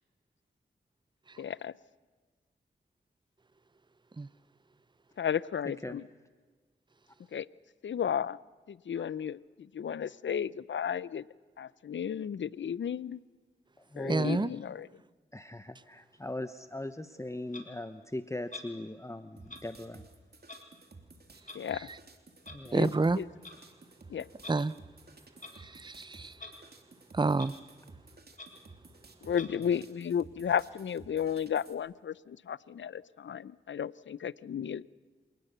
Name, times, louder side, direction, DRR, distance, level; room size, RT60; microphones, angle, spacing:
voice 1, 1.4-1.7 5.2-6.0 7.3-7.5 7.8-8.4 8.7-11.3 11.6-13.2 14.0-14.9 21.5-21.9 22.7-23.3 24.1-24.3 29.2-34.8, left 8 dB, 75° left, 20 dB, 0.6 m, -33 dB
voice 2, 5.6-6.0 13.8-14.4 15.3-20.1 22.5-23.0 29.6-29.8, left 1 dB, 15° left, 10 dB, 1.1 m, -40 dB
voice 3, 14.1-14.5 22.7-23.2 24.5-24.7 25.7-26.3 27.1-27.5, right 3 dB, 25° right, 18 dB, 0.7 m, -28 dB
Clock, 17.5-17.7 18.5-18.7 19.5-19.6 20.4-20.6 21.4-21.6 22.4-22.6 23.3-23.6 24.4-24.6 25.4-25.6 26.3-26.5 26.9-27.0 27.3-27.5 27.9-28.0 28.3-28.5 29.3-29.5, left 3 dB, 40° left, 4.1 m, -46 dB
sound 1, 19.4-31.7, right 3 dB, 55° right, 3.1 m, -55 dB
26.5 x 19.0 x 6.8 m, 1.4 s
cardioid pair, 40°, 20 cm